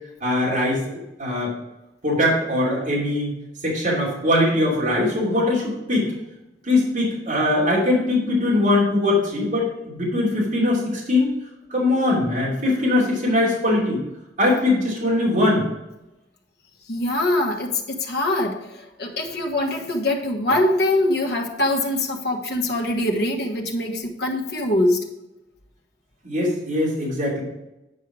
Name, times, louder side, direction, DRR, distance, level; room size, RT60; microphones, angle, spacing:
voice 1, 0.2-0.8 1.2-1.5 2.0-3.3 3.6-6.1 6.6-11.3 11.7-14.0 14.4-15.7 26.2-27.4, left 1 dB, 45° right, -6 dB, 2.8 m, -21 dB
voice 2, 16.9-18.6 19.0-25.1, left 1 dB, 60° left, 1 dB, 1.3 m, -23 dB
9.3 x 5.5 x 4.8 m, 0.94 s
head